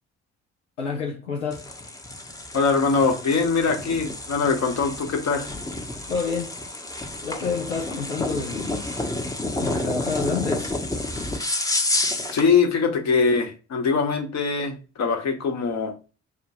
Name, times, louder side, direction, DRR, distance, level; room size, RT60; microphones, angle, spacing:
voice 1, 0.8-1.7 6.1-6.6 7.2-8.9 9.6-10.8, left 5 dB, 90° left, 0.5 m, -29 dB
sound 1, 1.5-12.5, left 2 dB, 10° left, 0.7 m, -30 dB
voice 2, 2.5-5.5 12.3-15.9, left 5 dB, 50° left, 1.1 m, -22 dB
4.8 x 2.2 x 2.9 m
figure-of-eight pair, 40°, 35 cm